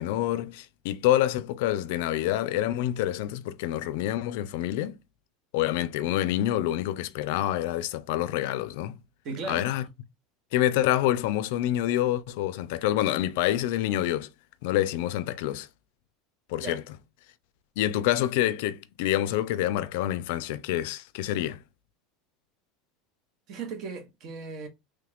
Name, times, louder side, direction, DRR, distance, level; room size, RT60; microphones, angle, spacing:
voice 1, 0.0-4.9 5.5-9.0 9.5-9.8 10.5-14.3 14.6-15.7 16.5-16.8 17.8-21.6, left 13 dB, 70° left, 0.3 m, -27 dB
voice 2, 9.2-9.7 16.6-16.8 23.5-24.7, right 4 dB, 45° right, 0.9 m, -36 dB
3.1 x 2.3 x 3.4 m
supercardioid pair, 140°, 0 cm